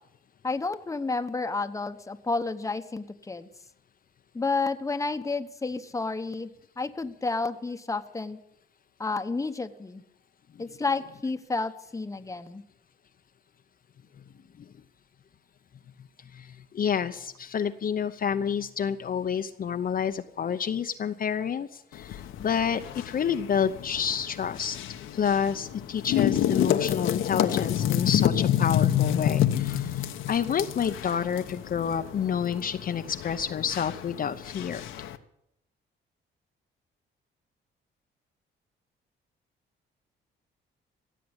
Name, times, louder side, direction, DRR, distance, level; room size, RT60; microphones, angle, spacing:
voice 1, 0.4-3.5 4.3-8.4 9.0-10.0 10.6-12.6, left 3 dB, 15° left, 9 dB, 1.0 m, -31 dB
voice 2, 16.3-24.8 25.1-30.0 30.3-34.8, left 7 dB, 45° left, 8 dB, 0.8 m, -29 dB
sound 1, 21.9-35.2, left 11 dB, 80° left, 1.0 m, -29 dB
16.0 x 7.6 x 9.7 m, 0.78 s
cardioid pair, 90°, 20 cm